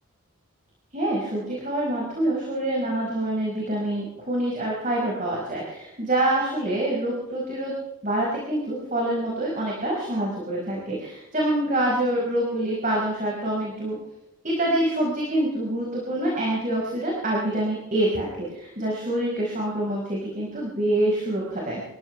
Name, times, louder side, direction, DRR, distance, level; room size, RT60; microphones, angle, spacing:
voice 1, 0.9-7.7 8.0-14.0 14.4-21.8, right 1 dB, 35° right, -3 dB, 5.1 m, -26 dB
26.5 x 15.5 x 3.4 m, 0.97 s
head